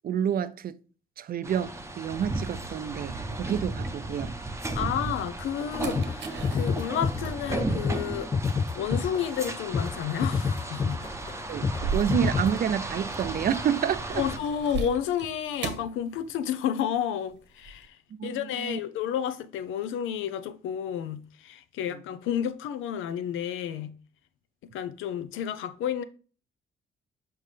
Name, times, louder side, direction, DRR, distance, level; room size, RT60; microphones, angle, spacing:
voice 1, 0.0-0.8 1.2-4.4 11.5-14.2 18.2-18.8 21.9-22.0, right 9 dB, 50° right, 0.4 m, -29 dB
sound 1, 1.4-14.4, right 2 dB, 15° right, 0.7 m, -35 dB
sound 2, 1.8-4.6 5.0-16.8 17.0-17.9, right 4 dB, 65° right, 1.1 m, -40 dB
voice 2, 4.7-8.3 8.7-11.0 14.1-18.0 18.2-23.9 24.6-26.0, left 9 dB, 85° left, 0.6 m, -31 dB
sound 3, 5.6-5.7 6.0-6.2 6.4-7.5 7.8-8.1 8.3-9.5 9.7-10.0 10.2-11.4 11.6-11.8 12.1-12.7, left 5 dB, 25° left, 0.4 m, -28 dB
5.7 x 5.3 x 3.3 m
cardioid pair, 90°, 20 cm